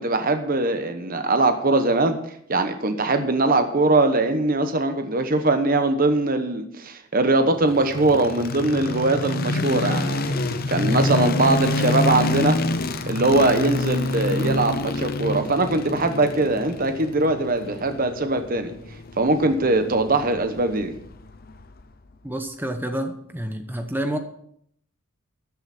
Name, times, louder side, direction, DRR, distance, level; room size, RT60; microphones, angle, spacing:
voice 1, 0.0-2.2 2.5-12.6 13.1-18.7 19.2-20.9, right 2 dB, 40° right, 8 dB, 1.0 m, -21 dB
sound 1, 7.7-21.8, left 2 dB, 45° left, 0.7 m, -27 dB
voice 2, 22.2-24.2, right 1 dB, 10° right, 7 dB, 0.9 m, -28 dB
13.5 x 9.6 x 4.3 m, 0.68 s
head